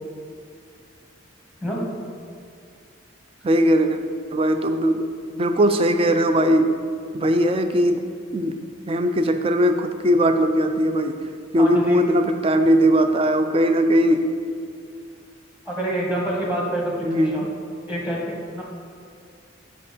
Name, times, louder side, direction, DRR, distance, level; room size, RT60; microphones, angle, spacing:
voice 1, 3.4-4.0 4.3-5.1 5.3-6.7 7.1-8.0 8.3-8.6 8.9-11.2 11.5-14.2 17.0-17.5, equal, 25° right, 7 dB, 0.3 m, -19 dB
voice 2, 11.6-12.0 15.7-17.4 17.9-18.6, right 1 dB, 5° right, -3 dB, 1.0 m, -27 dB
7.7 x 5.2 x 4.0 m, 2.3 s
head